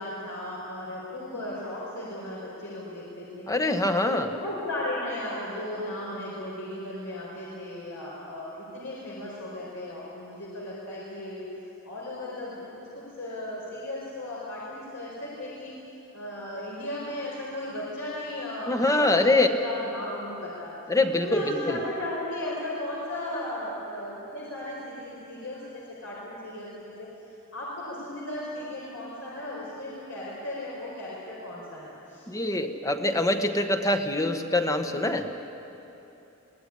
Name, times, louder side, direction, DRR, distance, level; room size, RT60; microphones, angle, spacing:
voice 1, 0.0-3.5 4.0-11.5 11.8-15.7 16.1-20.7 21.2-27.1 27.5-32.3, left 1 dB, 75° left, -6 dB, 4.8 m, -36 dB
voice 2, 3.5-4.3 18.7-19.5 20.9-21.8 32.3-35.3, left 2 dB, 15° left, 6 dB, 1.2 m, -24 dB
23.0 x 17.5 x 9.9 m, 3.0 s
head